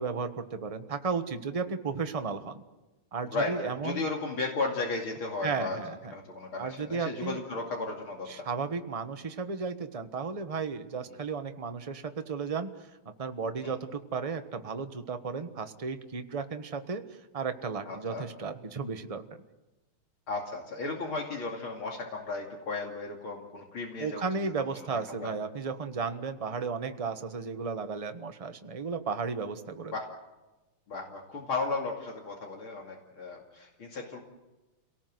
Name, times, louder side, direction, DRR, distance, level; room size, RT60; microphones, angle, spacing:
voice 1, 0.0-2.6 3.1-4.1 5.4-6.1 6.6-7.4 8.3-12.7 13.0-17.0 17.3-19.2 24.0-29.9, right 5 dB, 25° right, 8 dB, 0.9 m, -34 dB
voice 2, 3.2-5.8 6.1-8.3 13.6-13.7 17.8-18.2 20.3-24.2 24.9-25.3 29.9-30.1 30.9-34.2, left 3 dB, 70° left, 0 dB, 3.4 m, -35 dB
29.0 x 18.5 x 7.8 m, 1.1 s
omnidirectional pair, 2.4 m